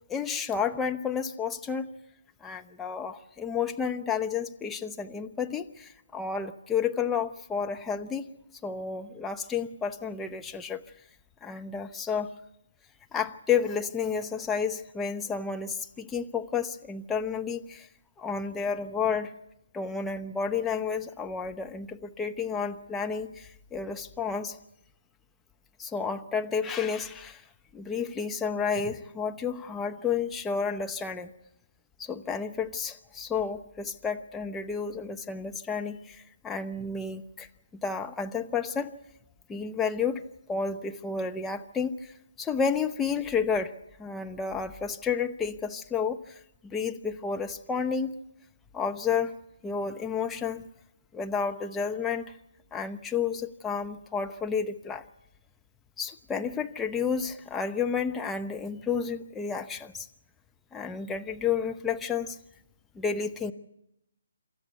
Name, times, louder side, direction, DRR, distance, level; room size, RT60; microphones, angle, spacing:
voice 1, 0.1-1.9 2.4-8.2 8.6-10.8 11.4-12.3 13.1-17.9 18.2-19.3 19.7-24.6 25.8-27.4 27.7-31.3 32.0-37.5 37.8-38.9 39.5-40.2 40.5-43.7 44.0-48.1 48.7-49.3 49.6-50.7 51.1-52.4 52.7-55.0 56.0-60.1 60.7-62.4 62.9-63.5, left 6 dB, 10° left, 5 dB, 0.9 m, -31 dB
27.5 x 13.5 x 8.1 m, 0.84 s
figure-of-eight pair, 140°, 0 cm